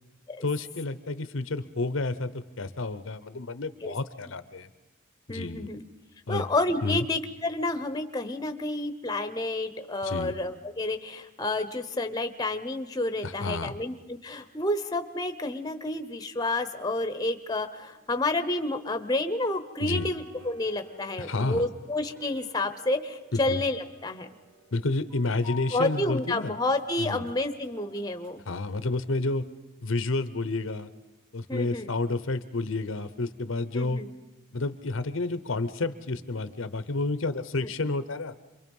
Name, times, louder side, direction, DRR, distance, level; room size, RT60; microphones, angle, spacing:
voice 1, 0.4-4.7 5.3-5.7 6.3-6.4 6.8-7.0 10.0-10.3 13.2-13.7 19.8-20.1 21.2-21.7 23.3-23.6 24.7-26.5 27.0-27.3 28.5-29.4 29.8-30.9 31.3-34.0 34.5-38.3, left 2 dB, 75° left, 13 dB, 0.9 m, -30 dB
voice 2, 5.3-5.8 6.3-24.3 25.7-28.4 31.5-31.9 33.7-34.1, left 2 dB, 20° left, 9 dB, 0.8 m, -30 dB
sound 1, 17.7-28.3, left 2 dB, 70° right, 5.3 m, -50 dB
27.5 x 23.0 x 5.5 m, 1.1 s
head